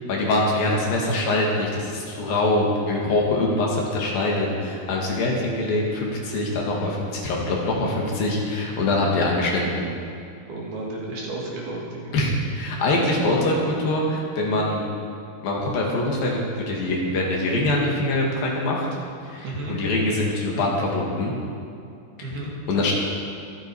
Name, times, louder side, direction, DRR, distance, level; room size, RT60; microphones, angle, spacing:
voice 1, 0.1-7.8 8.2-9.8 12.1-14.8 15.4-18.9 19.3-21.3 22.7-22.9, left 2 dB, 60° left, -2 dB, 3.6 m, -23 dB
voice 2, 10.5-12.1 19.4-19.8 22.2-22.5, right 2 dB, 60° right, -3 dB, 3.9 m, -32 dB
24.5 x 8.6 x 4.8 m, 2.5 s
omnidirectional pair, 5.2 m